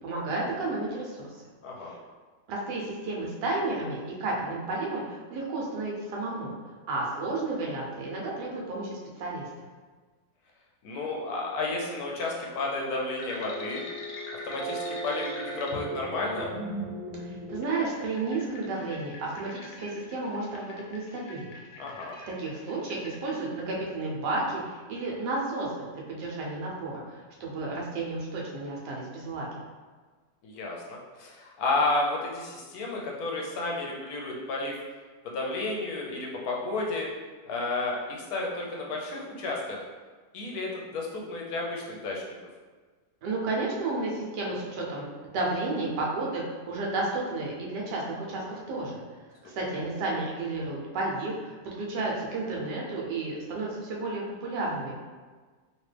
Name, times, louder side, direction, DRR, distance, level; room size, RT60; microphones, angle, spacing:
voice 1, 0.0-1.3 1.8-1.9 2.5-6.5 6.9-9.6 17.2-21.6 22.3-29.5 43.2-49.0 49.4-54.9, right 2 dB, 80° right, -3 dB, 1.4 m, -32 dB
voice 2, 10.8-13.8 14.4-16.5 21.8-22.2 30.4-34.7 35.2-37.1 37.4-39.8 40.3-42.2, left 2 dB, 70° left, -2 dB, 1.1 m, -32 dB
sound 1, 13.2-23.4, left 1 dB, 90° left, 1.3 m, -42 dB
sound 2, 13.4-18.4, right 2 dB, 10° right, 0.6 m, -39 dB
3.1 x 2.8 x 3.2 m, 1.4 s
omnidirectional pair, 1.8 m